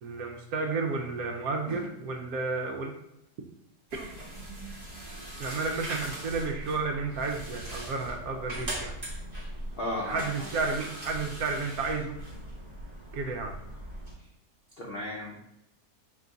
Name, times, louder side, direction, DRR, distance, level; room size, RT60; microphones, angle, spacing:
voice 1, 0.0-2.9 3.9-4.1 5.4-8.9 10.0-12.2 13.1-13.5, right 4 dB, 70° right, 3 dB, 1.0 m, -32 dB
sound 1, 3.9-14.1, right 1 dB, 30° right, 1.0 m, -40 dB
voice 2, 9.7-10.5 14.8-15.4, left 1 dB, 65° left, -3 dB, 0.5 m, -35 dB
3.4 x 2.9 x 3.9 m, 0.85 s
omnidirectional pair, 1.8 m